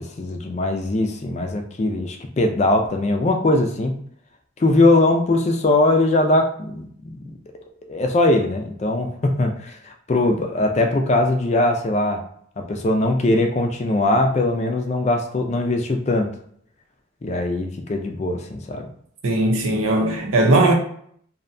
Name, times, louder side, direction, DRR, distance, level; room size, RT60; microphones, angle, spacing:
voice 1, 0.0-3.9 4.6-7.4 7.9-12.2 12.6-16.3 17.2-18.9, left 2 dB, 35° left, 0.3 m, -21 dB
voice 2, 19.2-20.7, right 2 dB, 90° right, 0.6 m, -18 dB
2.7 x 2.1 x 2.5 m
head